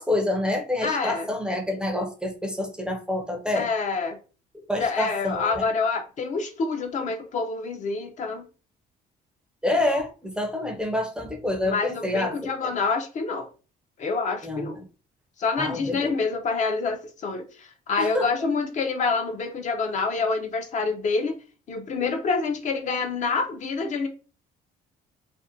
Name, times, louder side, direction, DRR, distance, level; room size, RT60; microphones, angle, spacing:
voice 1, 0.0-3.7 4.5-5.7 9.6-12.5 14.4-14.8 15.6-16.1 18.0-18.5, left 1 dB, 5° right, 0.5 m, -27 dB
voice 2, 0.8-1.3 3.5-4.2 4.8-8.5 11.6-13.5 14.0-14.8 15.4-21.4 21.7-24.1, left 4 dB, 45° left, 0.5 m, -27 dB
2.5 x 2.1 x 2.6 m
cardioid pair, 110°, 17 cm